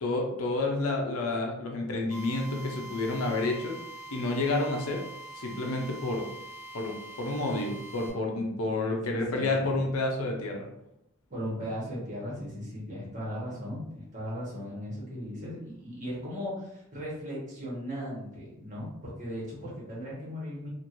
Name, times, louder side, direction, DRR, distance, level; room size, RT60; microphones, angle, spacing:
voice 1, 0.0-3.7 4.1-5.0 5.4-6.3 6.7-10.7, left 2 dB, 80° left, 1 dB, 0.6 m, -30 dB
Drill, 2.1-8.1, right 2 dB, 15° right, 0.7 m, -44 dB
voice 2, 9.1-9.7 11.3-20.7, equal, 35° right, -6 dB, 1.2 m, -37 dB
3.1 x 2.5 x 2.5 m, 0.80 s
head